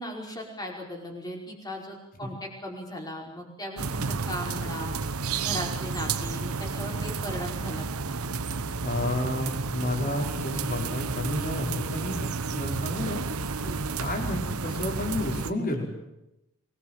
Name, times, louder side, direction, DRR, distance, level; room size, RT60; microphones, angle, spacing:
voice 1, 0.0-4.9 5.4-8.0 13.6-13.8, left 1 dB, 15° left, 0 dB, 5.2 m, -37 dB
sound 1, 3.8-15.5, right 4 dB, 80° right, 1.1 m, -31 dB
voice 2, 8.8-13.2 14.0-15.9, left 1 dB, 40° left, 2 dB, 5.1 m, -31 dB
24.5 x 20.0 x 7.5 m, 0.89 s
head